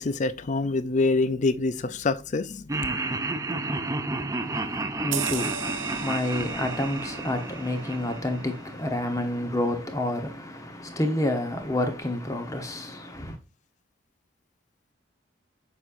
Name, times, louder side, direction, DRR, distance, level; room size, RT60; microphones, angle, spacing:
voice 1, 0.0-2.6, left 3 dB, 35° left, 0.4 m, -25 dB
Laughter, 2.7-8.9, right 2 dB, 15° right, 0.5 m, -31 dB
voice 2, 4.4-13.4, left 1 dB, 15° left, 1.0 m, -29 dB
sound 1, 5.1-10.1 10.5-10.7, right 8 dB, 70° right, 0.8 m, -38 dB
7.2 x 5.5 x 2.5 m
head